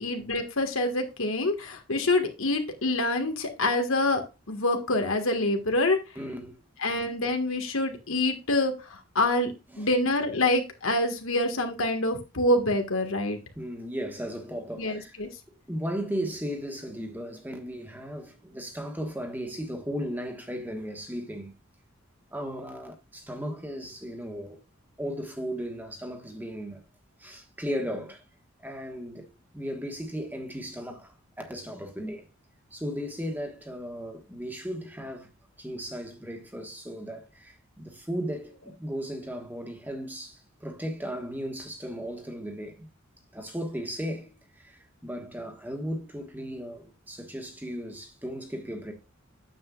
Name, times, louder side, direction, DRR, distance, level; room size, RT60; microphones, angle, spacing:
voice 1, 0.0-6.0 6.8-9.5 9.8-13.4 14.8-15.3, left 2 dB, 80° left, 1.7 m, -26 dB
voice 2, 6.1-6.6 9.7-9.9 13.5-15.2 15.7-21.6 22.3-24.6 25.0-26.8 27.2-28.2 28.6-32.3 32.7-35.3 35.6-42.9 43.3-48.9, equal, 10° right, 1.3 m, -36 dB
9.2 x 7.6 x 2.4 m
head